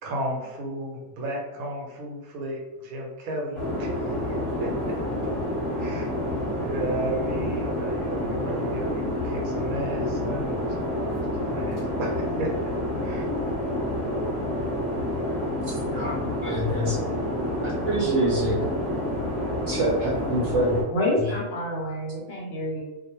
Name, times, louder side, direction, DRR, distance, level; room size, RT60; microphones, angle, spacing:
voice 1, 0.0-4.0 4.2-4.9 5.8-10.6 10.9-12.5 13.0-13.2, right 1 dB, 85° right, -1 dB, 1.1 m, -34 dB
sound 1, 3.5-20.8, left 1 dB, 25° left, 0.9 m, -28 dB
voice 2, 15.7-17.0 17.6-18.6 19.7-20.8, right 1 dB, 65° right, -5 dB, 0.8 m, -26 dB
voice 3, 20.9-22.8, left 1 dB, 60° left, -2 dB, 0.7 m, -27 dB
2.4 x 2.1 x 2.8 m, 1.1 s
omnidirectional pair, 1.5 m